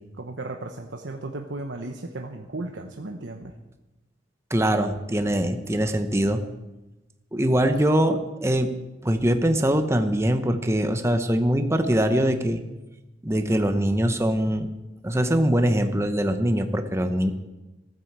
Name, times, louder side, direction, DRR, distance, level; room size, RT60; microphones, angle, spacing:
voice 1, 0.2-3.5 7.5-7.6, right 2 dB, 80° right, 3 dB, 1.0 m, -35 dB
voice 2, 4.5-6.4 7.3-8.7 9.0-12.6 13.2-14.7 15.0-17.3, right 1 dB, 15° right, 7 dB, 0.9 m, -22 dB
16.0 x 9.6 x 7.4 m, 1.1 s
head